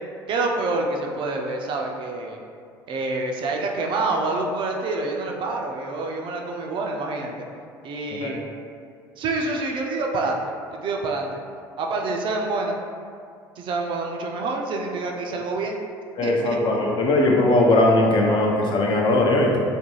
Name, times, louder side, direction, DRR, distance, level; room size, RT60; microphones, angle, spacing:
voice 1, 0.3-2.4 2.9-7.4 7.8-8.5 9.2-10.4 10.8-11.3 11.8-12.8 13.6-15.8 16.2-16.6, right 3 dB, 45° right, 1 dB, 0.4 m, -27 dB
voice 2, 16.2-19.6, left 2 dB, 45° left, -1 dB, 0.5 m, -19 dB
2.4 x 2.1 x 3.1 m, 2.3 s
hypercardioid pair, 65°, 11 cm